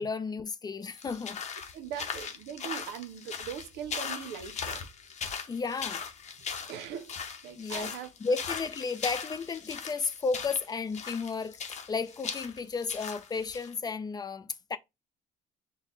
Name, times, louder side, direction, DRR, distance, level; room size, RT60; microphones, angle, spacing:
voice 1, 0.0-1.4 5.5-6.0 7.6-7.9 8.2-14.8, left 4 dB, 25° left, 0.4 m, -33 dB
sound 1, 0.9-13.7, left 6 dB, 40° left, 0.7 m, -39 dB
voice 2, 1.7-4.9 6.4-8.1, right 8 dB, 90° right, 0.6 m, -41 dB
4.0 x 2.1 x 3.7 m
cardioid pair, 110°, 17 cm